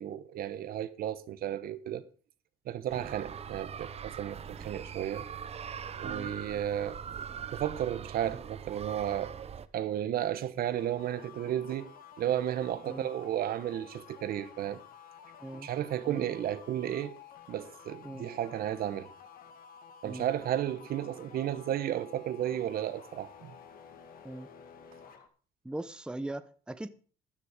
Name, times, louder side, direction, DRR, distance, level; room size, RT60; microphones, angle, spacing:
voice 1, 0.0-2.0 2.7-5.2 5.9-7.0 7.5-9.3 9.7-14.8 15.6-17.1 17.5-19.1 20.0-23.5, right 11 dB, 60° right, 1.1 m, -33 dB
sound 1, 2.9-9.7, right 7 dB, 40° right, 0.9 m, -42 dB
sound 2, 10.6-25.3, left 7 dB, 60° left, 2.2 m, -52 dB
voice 2, 25.6-26.9, right 1 dB, 5° right, 0.8 m, -40 dB
13.5 x 10.0 x 5.0 m
cardioid pair, 110°, 17 cm